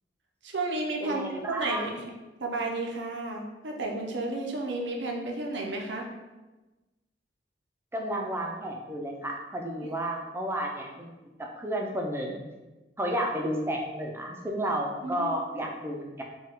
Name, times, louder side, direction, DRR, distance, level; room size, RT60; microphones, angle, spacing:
voice 1, 0.4-2.1 2.4-6.1 9.8-9.9 15.0-15.3, right 2 dB, 85° right, 1 dB, 0.7 m, -32 dB
voice 2, 1.0-1.9 7.9-11.1 11.4-12.4 13.0-16.2, right 1 dB, 15° right, 1 dB, 0.5 m, -32 dB
4.3 x 2.3 x 3.6 m, 1.1 s
head